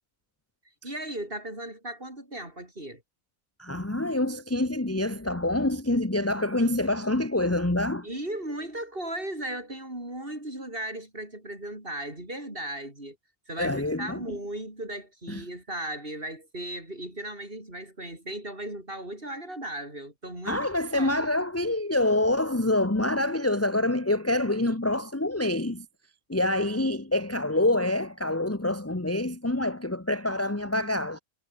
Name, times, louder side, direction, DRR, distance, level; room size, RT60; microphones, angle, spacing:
voice 1, 0.8-3.0 8.0-13.2 13.5-21.4, right 1 dB, 40° right, 7.4 m, -37 dB
voice 2, 3.6-8.1 13.6-14.2 15.3-15.4 20.4-25.8 26.3-31.2, left 1 dB, 10° left, 1.4 m, -26 dB
omnidirectional pair, 1.5 m